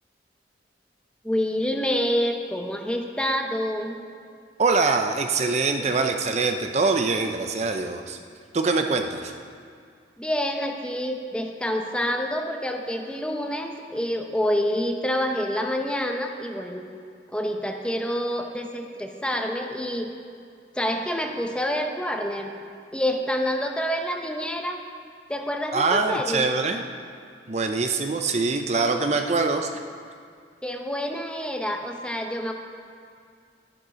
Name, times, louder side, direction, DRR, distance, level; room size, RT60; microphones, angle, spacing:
voice 1, 1.2-4.0 5.8-5.9 10.2-16.8 17.3-20.1 20.7-22.5 22.9-24.8 25.3-26.4 30.6-32.5, equal, 5° left, 3 dB, 0.8 m, -27 dB
voice 2, 4.6-8.2 8.5-9.3 25.7-26.8 27.5-29.7, right 4 dB, 40° right, 5 dB, 0.6 m, -23 dB
12.5 x 10.5 x 5.1 m, 2.3 s
head